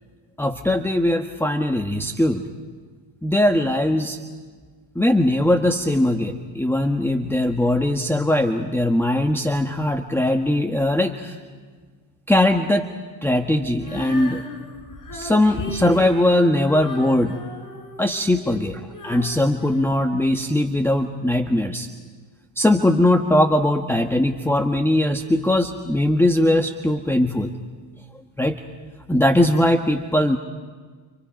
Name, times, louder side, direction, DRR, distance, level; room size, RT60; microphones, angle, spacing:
voice 1, 0.4-2.5 3.2-4.2 4.9-11.4 12.3-12.9 13.2-14.4 15.1-17.4 18.0-21.9 22.6-27.5 28.4-28.6 29.1-30.4, left 1 dB, 5° left, 6 dB, 1.4 m, -20 dB
Female singing, 13.8-20.8, left 2 dB, 40° left, 7.4 m, -37 dB
30.0 x 29.5 x 5.3 m, 1.5 s
supercardioid pair, 80°, 49 cm